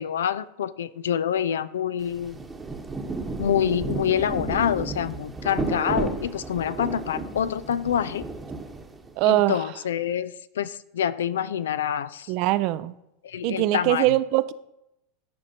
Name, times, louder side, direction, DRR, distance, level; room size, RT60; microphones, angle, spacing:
voice 1, 0.0-2.4 3.4-8.2 9.3-12.3 13.2-14.1, left 9 dB, 75° left, 16 dB, 0.4 m, -26 dB
Rain, 2.0-9.2, right 3 dB, 15° right, 1.0 m, -33 dB
voice 2, 9.2-9.6 12.3-12.9 13.4-14.5, right 16 dB, 55° right, 15 dB, 0.4 m, -22 dB
14.0 x 5.2 x 2.8 m, 0.84 s
hypercardioid pair, 90°, 0 cm